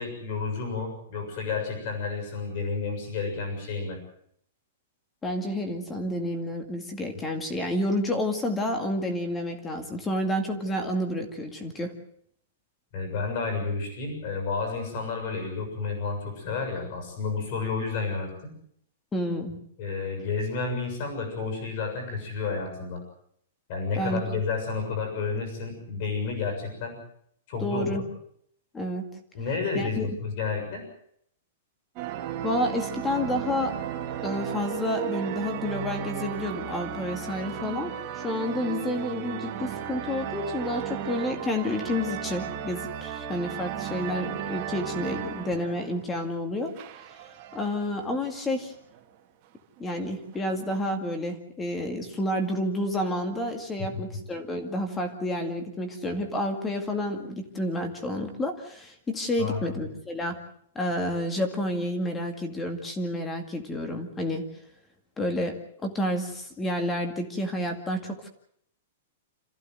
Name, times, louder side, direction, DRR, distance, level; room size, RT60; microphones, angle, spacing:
voice 1, 0.0-4.0 12.9-18.5 19.8-23.0 23.7-27.0 27.5-28.0 29.3-30.8 53.8-54.0 59.4-59.6, left 4 dB, 35° left, 4 dB, 7.0 m, -31 dB
voice 2, 5.2-11.9 19.1-19.6 24.0-24.4 27.6-28.0 28.7-29.0 29.7-30.1 32.4-33.8 34.2-46.7 47.5-48.7 49.8-60.4 60.8-64.4 65.2-68.3, left 1 dB, 10° left, 6 dB, 2.1 m, -30 dB
sound 1, 32.0-46.3 46.7-47.9 48.5-48.6 48.8-49.0 49.8-50.8, right 9 dB, 25° right, 2.3 m, -35 dB
27.5 x 15.0 x 7.8 m, 0.68 s
supercardioid pair, 175°, 0 cm